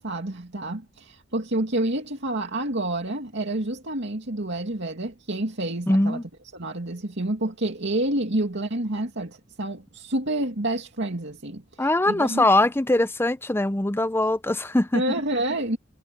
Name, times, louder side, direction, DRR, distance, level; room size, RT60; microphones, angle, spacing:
voice 1, 0.0-6.2 6.5-12.5 14.9-15.8, right 1 dB, 60° right, 2.5 m, -28 dB
voice 2, 5.9-6.2 11.8-15.0, left 1 dB, 10° left, 0.6 m, -22 dB
head